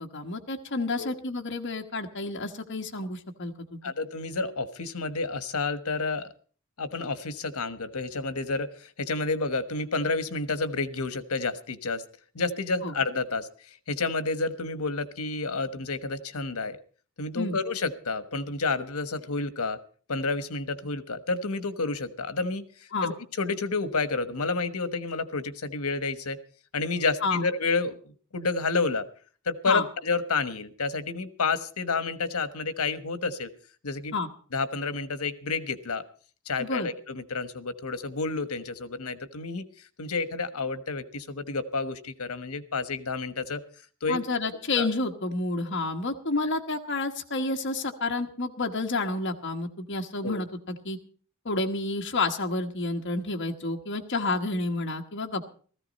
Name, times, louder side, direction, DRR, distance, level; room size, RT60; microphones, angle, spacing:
voice 1, 0.0-3.8 12.8-12.9 17.4-17.6 22.9-23.1 27.2-27.4 29.7-29.8 34.1-34.3 36.6-36.9 44.1-51.0 51.4-55.5, left 3 dB, 55° left, 3 dB, 1.3 m, -30 dB
voice 2, 3.8-6.3 6.8-12.0 12.3-13.5 13.9-16.8 17.2-19.8 20.1-26.4 26.7-29.0 29.4-33.5 33.8-34.1 34.5-36.0 36.4-39.6 40.0-43.6 44.0-44.2 44.8-44.9 50.2-50.4, left 3 dB, 85° left, 12 dB, 1.3 m, -30 dB
16.5 x 15.0 x 4.1 m, 0.42 s
head